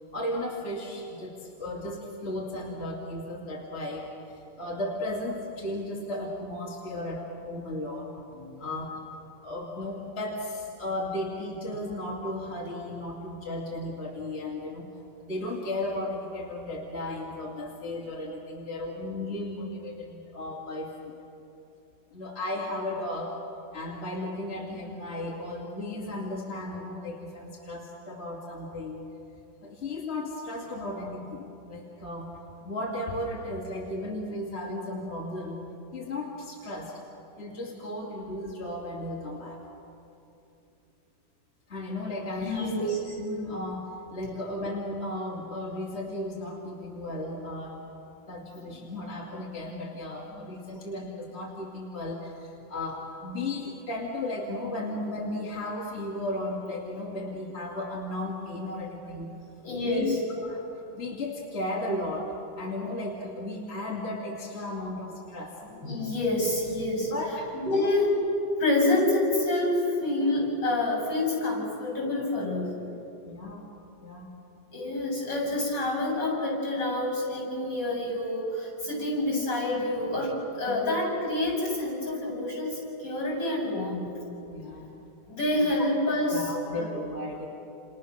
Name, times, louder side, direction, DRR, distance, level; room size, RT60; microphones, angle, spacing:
voice 1, 0.1-8.1 8.6-9.0 9.4-14.9 15.2-21.1 22.1-23.4 23.7-29.0 29.6-32.3 32.6-35.6 35.9-37.0 37.4-39.6 41.7-47.8 48.3-59.3 59.8-60.6 60.9-65.6 67.0-67.9 73.3-73.7 74.0-74.3 80.7-80.9 84.5-84.9 85.8-85.9 86.3-87.5, left 1 dB, 30° left, -3 dB, 2.8 m, -35 dB
voice 2, 42.4-43.1 44.3-44.4 59.6-60.2 65.6-67.1 67.5-68.1 68.6-72.7 74.7-84.1 85.3-86.9, left 2 dB, 65° left, 1 dB, 8.6 m, -27 dB
29.5 x 29.0 x 6.6 m, 2.9 s
omnidirectional pair, 2.1 m